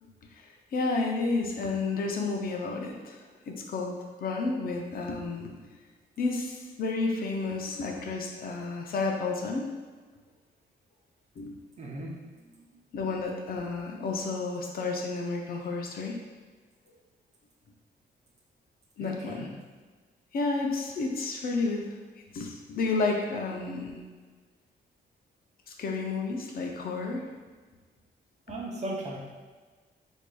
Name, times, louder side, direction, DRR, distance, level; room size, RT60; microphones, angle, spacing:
voice 1, 0.0-5.6 6.2-9.7 11.4-11.5 12.9-16.2 19.0-19.5 20.3-21.9 22.3-24.0 25.7-27.3, left 3 dB, 55° left, 1 dB, 0.5 m, -31 dB
voice 2, 11.8-12.8 19.0-19.5 28.5-29.2, right 1 dB, 40° right, -2 dB, 0.6 m, -38 dB
4.6 x 2.6 x 2.2 m, 1.4 s
wide cardioid pair, 160°, 18 cm